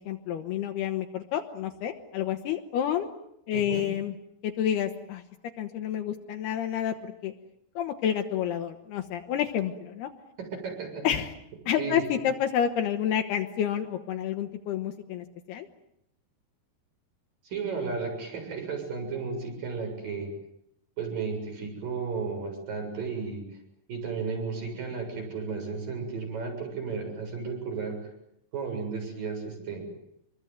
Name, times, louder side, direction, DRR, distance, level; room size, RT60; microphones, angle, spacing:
voice 1, 0.0-3.1 3.5-4.2 4.4-5.2 5.6-7.3 7.8-10.1 11.0-11.3 11.7-15.7, left 9 dB, 75° left, 4 dB, 3.3 m, -29 dB
voice 2, 10.4-11.0 11.8-12.0 17.5-20.3 21.0-23.4 23.9-28.0 28.5-29.8, right 5 dB, 55° right, 4 dB, 8.9 m, -34 dB
27.0 x 22.5 x 9.5 m, 0.78 s
omnidirectional pair, 4.8 m